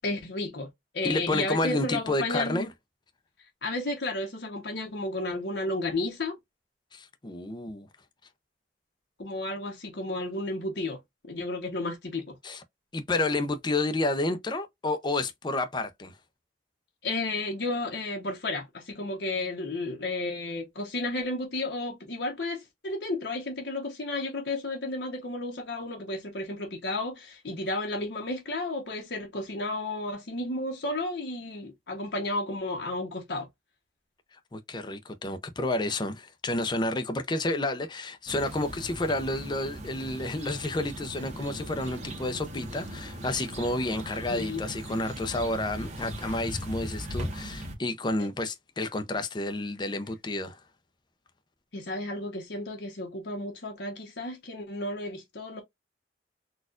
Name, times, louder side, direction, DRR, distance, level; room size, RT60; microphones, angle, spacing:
voice 1, 0.0-2.7 3.6-6.4 9.2-11.0 11.2-12.4 17.0-33.5 44.3-44.6 48.2-48.3 51.7-55.6, left 2 dB, 70° left, 1.0 m, -32 dB
voice 2, 1.0-2.7 6.9-7.9 12.4-12.6 12.9-16.1 34.5-50.6, left 2 dB, 25° left, 0.5 m, -30 dB
sound 1, 38.3-47.7, equal, 40° right, 1.1 m, -39 dB
4.1 x 2.4 x 2.4 m
head